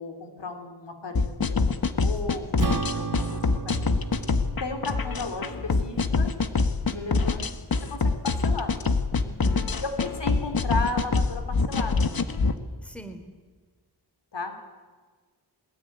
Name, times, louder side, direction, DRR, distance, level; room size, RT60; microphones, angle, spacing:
voice 1, 0.0-3.9 4.6-6.3 6.9-7.5 7.9-8.7 9.8-12.1 14.3-14.6, left 3 dB, 80° left, 5 dB, 3.6 m, -34 dB
sound 1, 1.1-12.5, left 4 dB, 55° left, 1.6 m, -25 dB
Acoustic guitar / Strum, 2.6-7.3, right 6 dB, 45° right, 1.5 m, -35 dB
voice 2, 2.9-3.3 6.9-7.4 9.2-9.7 12.8-13.2, right 3 dB, 5° left, 8 dB, 3.1 m, -43 dB
22.0 x 20.0 x 9.6 m, 1.5 s
wide cardioid pair, 65°, 42 cm